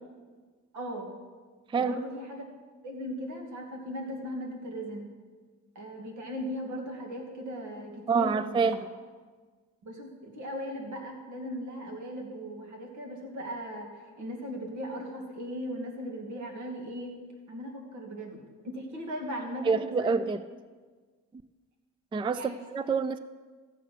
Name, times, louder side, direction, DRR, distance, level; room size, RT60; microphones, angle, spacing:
voice 1, 0.7-1.1 1.8-2.4 2.8-5.1 5.7-8.7 9.8-17.1 17.5-20.2 22.3-22.9, equal, 75° right, 1 dB, 2.6 m, -38 dB
voice 2, 8.1-8.8 19.7-20.4 22.1-22.4 22.7-23.2, right 5 dB, 15° right, 14 dB, 0.4 m, -26 dB
14.5 x 7.5 x 5.9 m, 1.5 s
cardioid pair, 90°, 30 cm